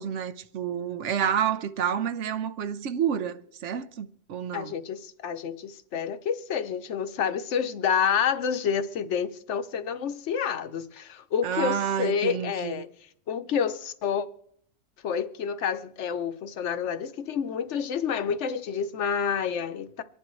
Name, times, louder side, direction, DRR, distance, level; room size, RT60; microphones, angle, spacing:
voice 1, 0.0-4.7 11.4-12.8, right 8 dB, 65° right, 1.0 m, -29 dB
voice 2, 4.5-12.9 13.3-14.3 15.0-20.0, left 7 dB, 60° left, 1.0 m, -29 dB
25.0 x 10.5 x 3.1 m
omnidirectional pair, 1.4 m